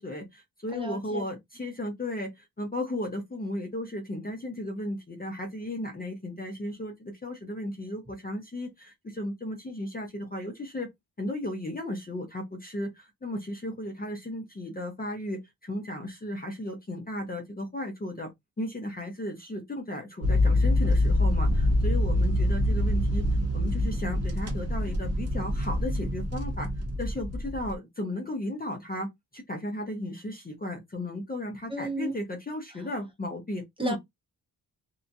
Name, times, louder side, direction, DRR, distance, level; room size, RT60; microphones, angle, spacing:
voice 1, 0.0-10.9 11.2-18.3 18.6-23.2 23.5-26.7 27.0-34.0, left 1 dB, 20° left, 0.7 m, -35 dB
voice 2, 0.7-1.2 31.7-32.2 33.8-34.0, right 1 dB, 15° right, 0.8 m, -32 dB
sound 1, 20.2-27.7, left 1 dB, 40° right, 0.9 m, -25 dB
2.7 x 2.2 x 2.6 m
wide cardioid pair, 135°, 40 cm